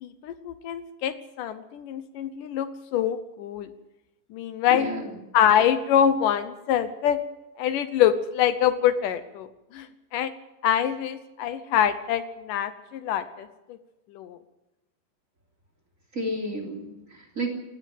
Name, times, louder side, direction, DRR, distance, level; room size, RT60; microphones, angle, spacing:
voice 1, 0.0-3.7 4.3-4.9 5.3-7.2 7.6-9.5 9.7-10.3 10.6-13.8 14.1-14.4, left 9 dB, 75° left, 12 dB, 2.5 m, -25 dB
voice 2, 4.7-5.0 16.1-17.5, right 1 dB, 25° right, 4 dB, 3.3 m, -31 dB
18.5 x 16.0 x 9.1 m, 0.97 s
omnidirectional pair, 3.9 m